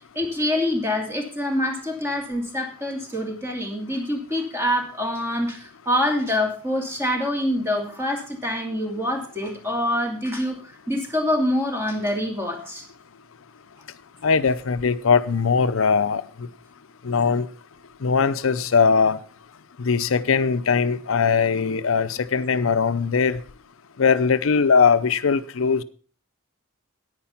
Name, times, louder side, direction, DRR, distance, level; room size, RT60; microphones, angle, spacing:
voice 1, 0.1-10.6 10.9-12.8, left 1 dB, 10° right, 2 dB, 2.7 m, -25 dB
voice 2, 14.2-16.2 17.0-17.5 18.0-19.2 19.8-23.4 24.0-25.8, left 5 dB, 80° left, 13 dB, 0.6 m, -20 dB
10.0 x 9.4 x 5.6 m, 0.41 s
head